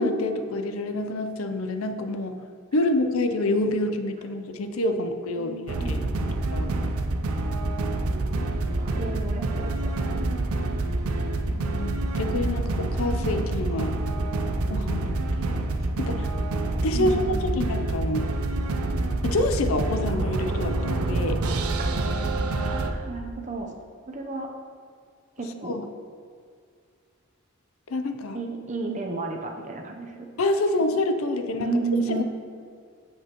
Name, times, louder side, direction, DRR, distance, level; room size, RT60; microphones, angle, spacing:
voice 1, 0.0-2.4 2.7-6.0 6.5-6.7 11.5-13.9 14.7-15.7 16.0-16.3 16.8-18.3 19.2-21.4 25.6-25.8 27.9-28.4 30.4-31.7, left 2 dB, 70° left, 7 dB, 0.5 m, -27 dB
voice 2, 5.4-6.0 6.2-6.4 8.0-8.2 8.6-10.4 10.7-10.9 16.9-17.7 21.8-22.2 22.6-23.7 24.1-24.5 25.4-25.8 28.3-30.1 31.6-32.2, right 3 dB, 35° right, 2 dB, 0.7 m, -33 dB
sound 1, 5.7-22.9, right 2 dB, 80° right, 0.6 m, -27 dB
8.1 x 7.8 x 3.0 m, 2.2 s
head